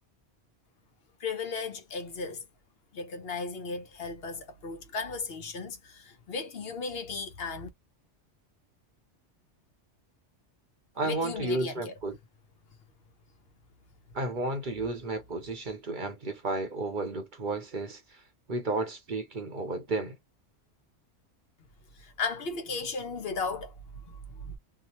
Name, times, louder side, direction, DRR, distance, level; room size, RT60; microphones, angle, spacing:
voice 1, 1.2-2.5 2.9-7.7 11.0-11.9 21.9-24.6, left 4 dB, 60° left, 0.9 m, -36 dB
voice 2, 11.0-12.1 14.1-18.2 18.5-20.1, right 2 dB, 45° right, 0.8 m, -32 dB
2.7 x 2.1 x 2.9 m
omnidirectional pair, 1.2 m